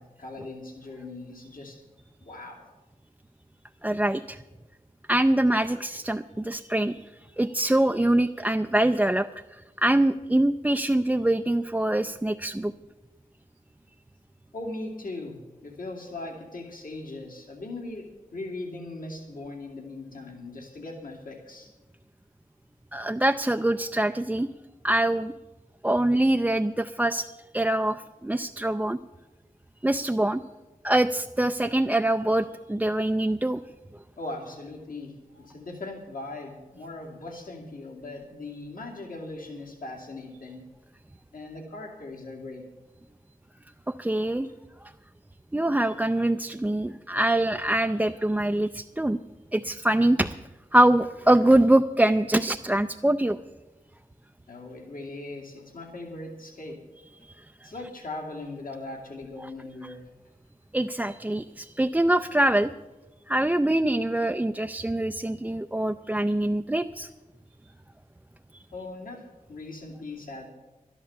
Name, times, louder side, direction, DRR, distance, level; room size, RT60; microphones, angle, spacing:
voice 1, 0.0-1.8 2.2-2.7 14.5-21.7 34.2-40.6 41.3-42.6 44.4-44.5 54.5-56.8 57.6-60.0 68.7-69.2 69.5-70.5, left 2 dB, 75° left, -1 dB, 2.5 m, -39 dB
voice 2, 3.8-4.4 5.1-7.0 7.4-9.3 9.8-12.7 22.9-24.5 24.8-25.3 25.8-27.3 27.5-29.0 29.8-30.4 30.8-33.6 44.0-44.5 45.5-49.2 49.5-50.4 50.7-53.4 60.7-62.7 63.3-67.1, right 1 dB, 10° right, 6 dB, 0.4 m, -24 dB
12.0 x 11.0 x 6.9 m, 1.1 s
cardioid pair, 60°, 15 cm